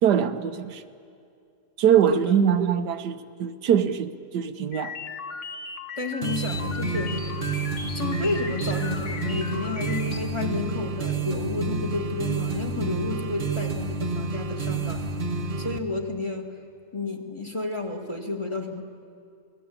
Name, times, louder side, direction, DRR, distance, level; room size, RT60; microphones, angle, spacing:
voice 1, 0.0-0.8 1.8-4.9, right 8 dB, 85° right, 9 dB, 1.5 m, -22 dB
voice 2, 2.1-2.5 6.0-7.2 7.9-15.0 15.6-16.6 16.9-18.8, left 3 dB, 20° left, 4 dB, 1.9 m, -31 dB
sound 1, 4.7-10.2, left 5 dB, 45° left, 1.7 m, -37 dB
sound 2, 6.2-15.8, right 3 dB, 35° right, 1.3 m, -29 dB
28.0 x 19.5 x 8.5 m, 2.4 s
omnidirectional pair, 1.7 m